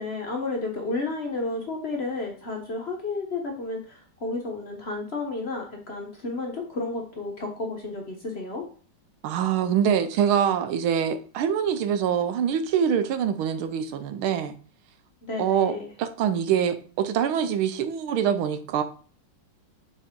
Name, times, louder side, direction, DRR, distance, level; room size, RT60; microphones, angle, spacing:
voice 1, 0.0-8.7 15.2-15.9, left 3 dB, 45° left, 0.9 m, -32 dB
voice 2, 9.2-14.5 15.4-18.8, right 8 dB, 80° right, 1.6 m, -24 dB
6.8 x 4.3 x 3.7 m
omnidirectional pair, 2.3 m